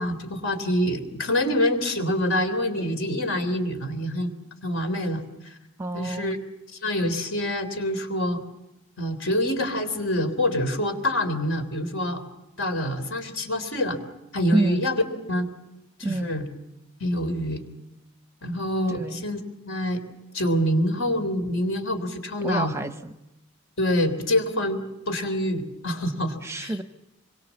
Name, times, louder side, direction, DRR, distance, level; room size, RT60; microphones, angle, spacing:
voice 1, 0.0-4.3 4.6-5.6 5.9-6.4 6.8-8.4 9.0-12.2 12.6-14.0 14.3-15.0 15.3-15.5 16.0-16.4 17.0-17.7 18.4-20.0 20.3-22.7 23.8-26.7, left 1 dB, 65° left, 7 dB, 3.6 m, -26 dB
voice 2, 5.8-6.4 14.5-14.9 16.0-16.4 18.9-19.2 22.4-23.1 26.4-26.8, right 2 dB, 15° right, 8 dB, 0.8 m, -28 dB
26.0 x 23.0 x 7.2 m, 0.94 s
head